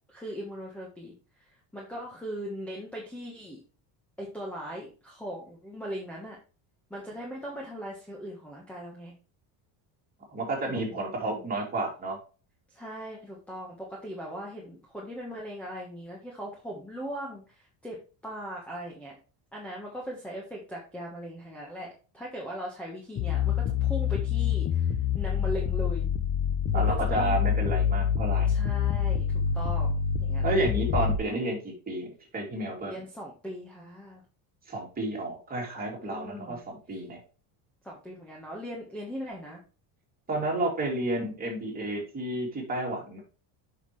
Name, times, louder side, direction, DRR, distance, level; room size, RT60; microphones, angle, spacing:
voice 1, 0.1-3.6 4.2-6.4 6.9-9.1 10.6-11.6 12.7-19.2 19.5-21.9 22.1-26.1 26.7-27.4 28.5-30.5 32.8-34.2 36.0-36.6 37.8-39.6, equal, 5° left, -3 dB, 1.3 m, -39 dB
voice 2, 10.3-12.2 26.7-28.5 30.4-31.6 31.9-32.1 32.3-33.0 34.7-37.2 40.3-43.2, right 2 dB, 20° right, -2 dB, 2.9 m, -31 dB
sound 1, 23.2-31.2, left 8 dB, 30° left, 0.5 m, -26 dB
8.2 x 5.8 x 3.2 m, 0.35 s
cardioid pair, 155°, 47 cm